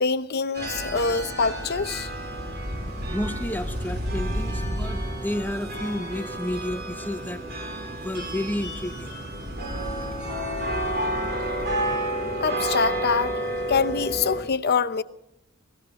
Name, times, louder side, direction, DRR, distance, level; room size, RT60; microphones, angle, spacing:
voice 1, 0.0-2.1 12.4-13.4 13.7-15.0, left 5 dB, 50° left, 0.8 m, -25 dB
sound 1, 0.5-14.4, right 1 dB, 55° right, 6.3 m, -30 dB
voice 2, 3.1-7.4 7.9-9.2, left 1 dB, 10° left, 0.8 m, -31 dB
19.5 x 17.5 x 3.7 m
head